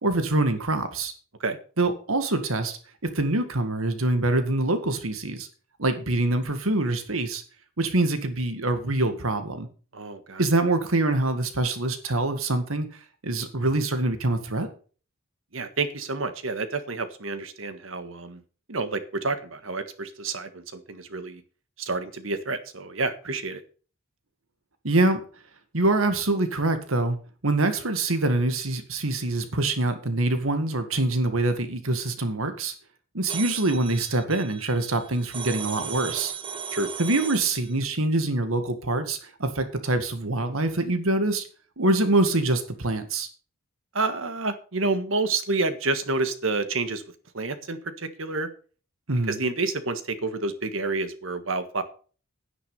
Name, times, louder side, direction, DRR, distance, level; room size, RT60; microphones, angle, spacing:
voice 1, 0.0-1.1 1.8-5.5 5.8-7.4 7.8-9.7 10.4-12.9 13.2-14.7 24.8-25.2 25.7-27.2 27.4-32.7 33.1-36.3 37.0-41.5 41.8-43.3 49.1-49.4, right 2 dB, 85° right, 9 dB, 2.0 m, -25 dB
voice 2, 9.9-10.4 15.5-18.4 18.7-21.4 21.8-23.6 36.7-36.9 43.9-47.0 47.3-48.5 49.3-51.8, right 3 dB, 70° right, 10 dB, 1.6 m, -29 dB
sound 1, 33.3-37.8, right 7 dB, 25° right, 1.0 m, -36 dB
10.0 x 9.5 x 5.6 m, 0.39 s
head